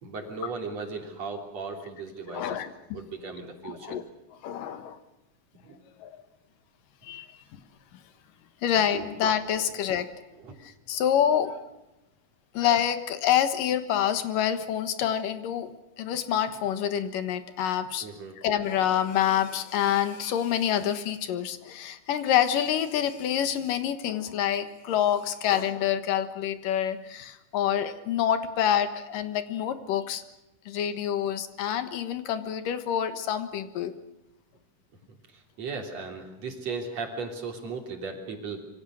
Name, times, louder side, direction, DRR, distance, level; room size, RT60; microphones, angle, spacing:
voice 1, 0.0-2.6 2.9-4.0 5.6-5.8 8.9-9.1 10.4-10.5 18.0-18.4 35.3-38.6, right 4 dB, 50° right, 3 dB, 4.3 m, -37 dB
voice 2, 2.3-2.7 3.6-4.0 4.4-5.0 6.0-6.2 7.0-7.3 8.6-10.1 10.6-11.7 12.5-18.1 18.4-30.2 30.7-33.9, left 10 dB, 90° left, 10 dB, 3.1 m, -27 dB
26.5 x 24.0 x 6.4 m, 0.96 s
omnidirectional pair, 3.8 m